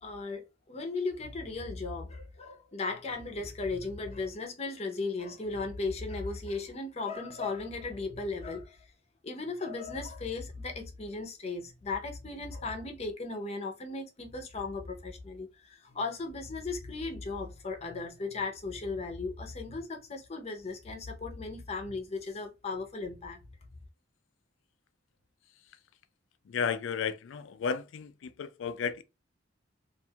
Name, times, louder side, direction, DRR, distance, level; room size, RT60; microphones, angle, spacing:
voice 1, 0.0-8.8 9.2-23.4, left 3 dB, 35° left, 0.6 m, -36 dB
voice 2, 26.5-29.0, left 6 dB, 90° left, 0.4 m, -33 dB
2.5 x 2.3 x 2.7 m
head